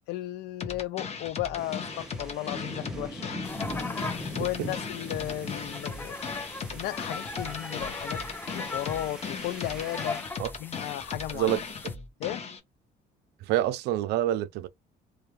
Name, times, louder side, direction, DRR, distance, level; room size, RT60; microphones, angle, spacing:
voice 1, 0.1-3.4 3.7-6.3 6.7-8.2 8.5-10.2 10.6-11.5 12.2-12.5, left 15 dB, 80° left, 0.4 m, -35 dB
sound 1, 0.6-12.6, left 5 dB, 40° left, 0.8 m, -37 dB
sound 2, 1.6-10.2, left 1 dB, 5° right, 0.8 m, -41 dB
sound 3, 3.4-12.0, left 3 dB, 10° left, 0.4 m, -40 dB
voice 2, 13.4-14.7, right 13 dB, 80° right, 0.4 m, -27 dB
2.4 x 2.2 x 3.1 m
cardioid pair, 110°, 17 cm